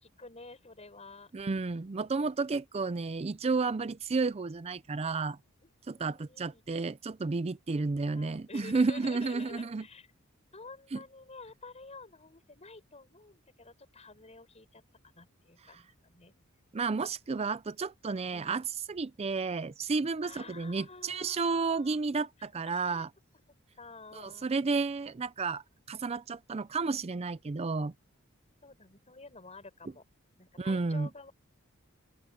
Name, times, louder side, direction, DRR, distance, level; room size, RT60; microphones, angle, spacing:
voice 1, 0.0-1.3 5.6-6.6 8.1-10.1 10.5-16.3 18.3-18.7 20.2-22.0 22.7-23.1 23.8-24.5 28.6-30.0 30.4-31.3, left 3 dB, 30° left, 7.0 m, -50 dB
voice 2, 1.3-5.4 5.9-9.8 10.9-11.0 15.7-15.8 16.7-23.1 24.1-27.9 30.6-31.1, right 4 dB, 30° right, 0.4 m, -32 dB
open air
head